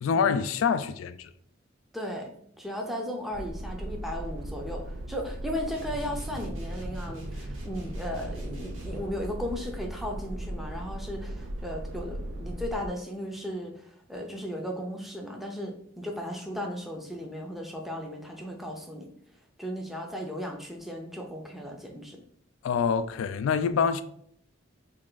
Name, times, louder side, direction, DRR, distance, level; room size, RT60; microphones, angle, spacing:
voice 1, 0.0-1.3 22.6-24.0, left 6 dB, 90° left, 0.3 m, -26 dB
voice 2, 1.9-19.1 19.6-22.2, equal, ahead, 0.5 m, -36 dB
sound 1, 3.3-12.9, right 1 dB, 70° right, 0.4 m, -37 dB
sound 2, 5.7-9.1, right 1 dB, 85° right, 1.0 m, -45 dB
3.4 x 2.4 x 3.7 m
head